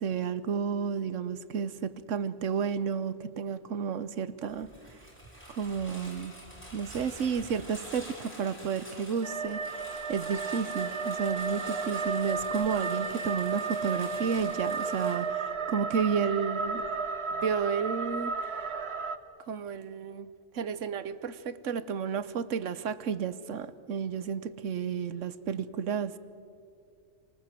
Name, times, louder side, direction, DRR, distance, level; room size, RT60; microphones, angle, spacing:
voice 1, 0.0-4.7 5.5-6.3 6.7-9.8 10.1-16.9 17.3-18.5 19.5-26.2, right 6 dB, 85° right, 15 dB, 1.2 m, -32 dB
Engine, 4.5-15.1, equal, 10° left, 6.1 m, -47 dB
sound 1, 9.2-19.2, right 4 dB, 60° right, 1.3 m, -33 dB
27.0 x 19.5 x 7.6 m, 2.4 s
omnidirectional pair, 1.3 m